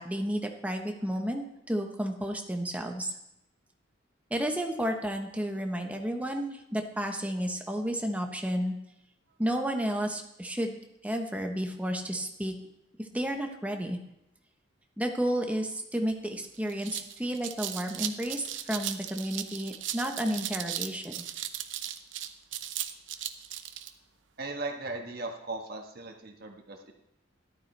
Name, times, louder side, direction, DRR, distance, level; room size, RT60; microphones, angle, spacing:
voice 1, 0.0-3.1 4.3-8.7 9.4-12.5 13.0-14.0 15.0-21.1, equal, 10° right, 3 dB, 1.1 m, -32 dB
sound 1, 16.1-16.2 16.5-23.9, right 11 dB, 80° right, 0.8 m, -37 dB
voice 2, 24.4-26.9, right 2 dB, 55° right, 2 dB, 1.6 m, -38 dB
13.5 x 12.0 x 3.4 m, 0.85 s
head